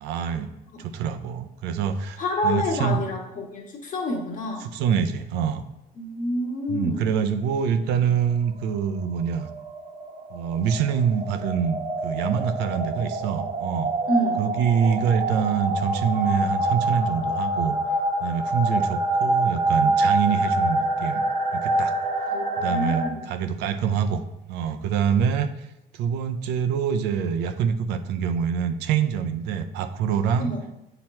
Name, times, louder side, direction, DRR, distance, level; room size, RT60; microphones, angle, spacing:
voice 1, 0.0-0.5 0.8-3.0 4.6-5.6 6.7-9.5 10.3-13.9 14.4-17.8 18.2-21.2 21.5-21.9 22.6-24.2 24.5-25.7 25.9-30.5, right 7 dB, 90° right, 9 dB, 0.5 m, -25 dB
voice 2, 2.2-4.7 6.0-7.2 14.1-14.4 22.3-23.3 30.4-30.6, left 1 dB, 50° left, 0 dB, 1.5 m, -28 dB
sound 1, 9.0-23.1, right 2 dB, 35° right, 0.8 m, -26 dB
7.8 x 2.9 x 4.2 m, 0.89 s
cardioid pair, 110°, 17 cm